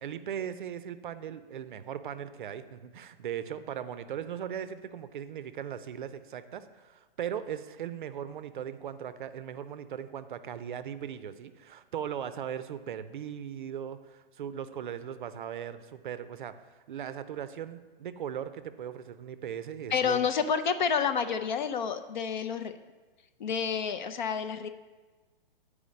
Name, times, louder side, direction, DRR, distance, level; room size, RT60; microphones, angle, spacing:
voice 1, 0.0-16.5 16.9-20.2, right 9 dB, 55° right, 12 dB, 0.5 m, -38 dB
voice 2, 19.9-22.8 23.4-24.7, left 6 dB, 50° left, 10 dB, 0.5 m, -29 dB
8.5 x 4.9 x 5.1 m, 1.3 s
hypercardioid pair, 165°, 29 cm